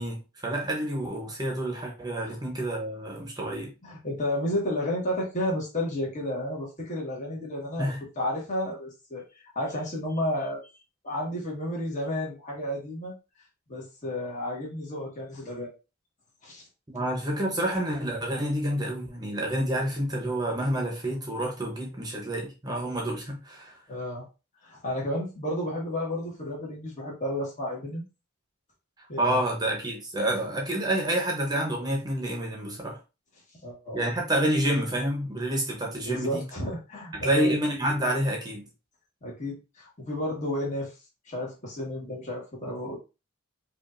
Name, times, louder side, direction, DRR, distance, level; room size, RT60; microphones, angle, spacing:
voice 1, 0.0-3.7 7.8-8.0 16.9-23.8 29.2-33.0 33.9-36.4 37.1-38.7, right 1 dB, 20° right, 0.9 m, -28 dB
voice 2, 3.8-9.2 9.5-10.6 11.0-13.1 13.7-15.7 16.4-16.6 23.9-24.3 24.6-28.0 29.1-29.4 33.6-34.0 36.0-37.5 39.2-40.9 41.3-43.0, left 1 dB, 35° left, 1.5 m, -32 dB
5.0 x 2.6 x 2.6 m
head